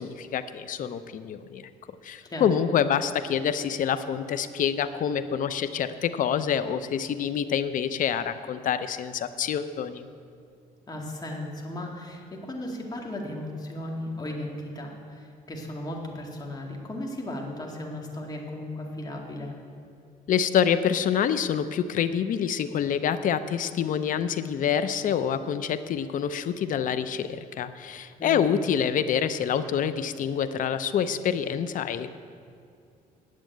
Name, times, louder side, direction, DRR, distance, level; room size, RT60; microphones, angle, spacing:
voice 1, 0.0-1.7 2.0-10.1 20.3-32.1, left 8 dB, 60° left, 12 dB, 0.6 m, -27 dB
voice 2, 10.9-19.5 28.2-28.6, left 1 dB, 25° left, 0 dB, 2.1 m, -36 dB
9.5 x 7.4 x 9.1 m, 2.4 s
cardioid pair, 100°, 15 cm